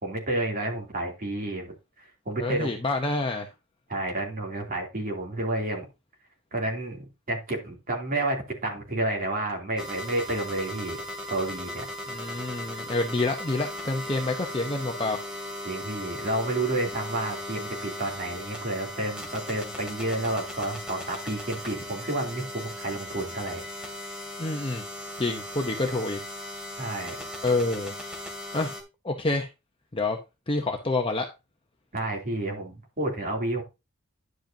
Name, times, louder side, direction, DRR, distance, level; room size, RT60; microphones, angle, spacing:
voice 1, 0.0-1.7 2.3-2.7 3.9-5.8 6.5-11.0 11.3-11.8 15.6-23.6 26.8-27.1 31.9-33.6, right 2 dB, 40° right, 2.9 m, -30 dB
voice 2, 2.4-3.5 12.1-15.2 24.4-24.8 25.2-26.2 27.4-27.9 28.5-28.7 29.0-29.5 29.9-30.2 30.5-31.3, left 2 dB, 25° left, 0.8 m, -27 dB
sound 1, 9.8-28.8, left 1 dB, 5° right, 2.4 m, -37 dB
10.5 x 7.8 x 2.8 m
head